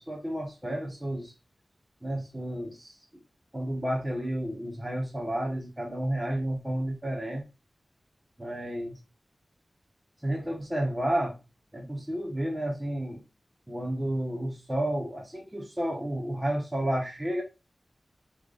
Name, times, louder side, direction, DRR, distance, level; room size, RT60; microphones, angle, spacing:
voice 1, 0.0-1.3 2.0-3.0 3.5-7.4 8.4-9.0 10.2-11.4 11.7-13.2 13.7-17.4, right 1 dB, 15° right, 1.5 m, -31 dB
6.2 x 3.4 x 2.5 m
wide cardioid pair, 80°, 0 cm